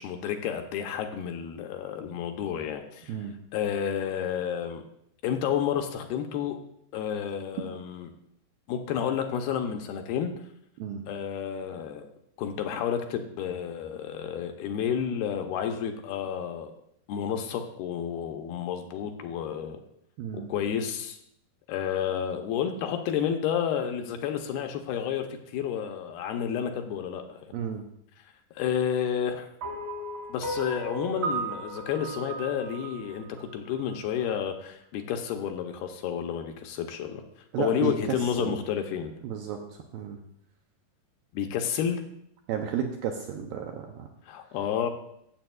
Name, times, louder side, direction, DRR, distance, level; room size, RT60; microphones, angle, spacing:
voice 1, 0.0-3.2 3.5-4.8 5.2-6.6 6.9-8.1 8.7-10.3 11.1-12.1 12.4-16.7 17.1-19.8 20.5-21.2 21.7-27.4 28.6-29.5 30.3-37.2 37.6-39.1 41.3-42.0 44.3-44.9, left 8 dB, 80° left, 5 dB, 2.4 m, -30 dB
voice 2, 20.2-20.5 27.5-27.8 37.5-38.6 39.2-40.2 42.5-44.1, right 8 dB, 90° right, 3 dB, 2.0 m, -33 dB
sound 1, 29.6-33.9, right 2 dB, 30° right, 1.1 m, -35 dB
13.0 x 7.8 x 2.3 m, 0.74 s
omnidirectional pair, 4.7 m